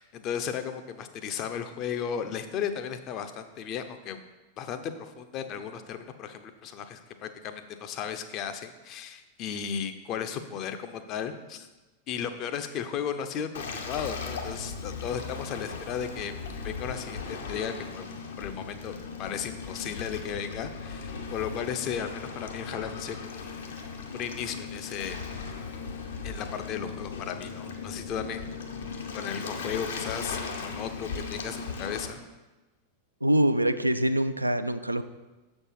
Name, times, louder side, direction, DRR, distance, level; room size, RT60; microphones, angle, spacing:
voice 1, 0.0-4.2 4.6-11.7 12.1-16.3 16.6-18.1 18.4-23.6 24.1-25.2 26.2-28.5 29.1-32.2, left 8 dB, 35° left, 9 dB, 0.6 m, -35 dB
Waves surf, 13.5-32.1, left 5 dB, 65° left, 0.8 m, -37 dB
voice 2, 33.2-35.0, right 1 dB, 85° right, 10 dB, 0.3 m, -24 dB
6.8 x 4.4 x 5.8 m, 1.1 s
figure-of-eight pair, 90°, 0 cm